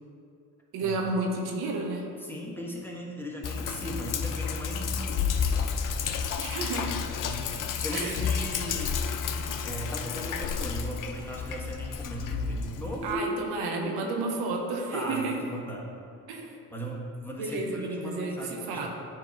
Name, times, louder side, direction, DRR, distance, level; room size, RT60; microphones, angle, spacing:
voice 1, 0.7-2.0 6.4-7.0 7.9-8.2 13.0-15.4 16.3-16.6 17.4-18.9, right 3 dB, 85° right, 1 dB, 0.9 m, -31 dB
voice 2, 2.2-5.8 7.2-13.3 14.9-15.9 16.7-18.9, equal, 5° left, -3 dB, 1.3 m, -38 dB
Sink (filling or washing), 3.4-13.1, left 6 dB, 55° left, 0.6 m, -31 dB
8.3 x 3.0 x 5.2 m, 2.4 s
supercardioid pair, 70°, 37 cm